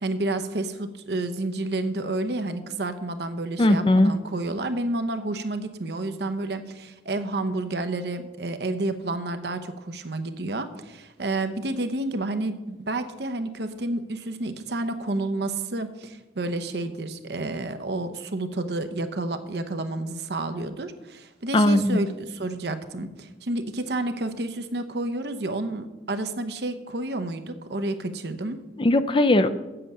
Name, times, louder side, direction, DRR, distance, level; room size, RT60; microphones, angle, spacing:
voice 1, 0.0-28.6, right 2 dB, 65° right, 9 dB, 0.8 m, -30 dB
voice 2, 3.6-4.1 21.5-22.0 28.8-29.5, left 1 dB, 30° left, 11 dB, 0.4 m, -19 dB
7.8 x 7.7 x 6.7 m, 1.1 s
head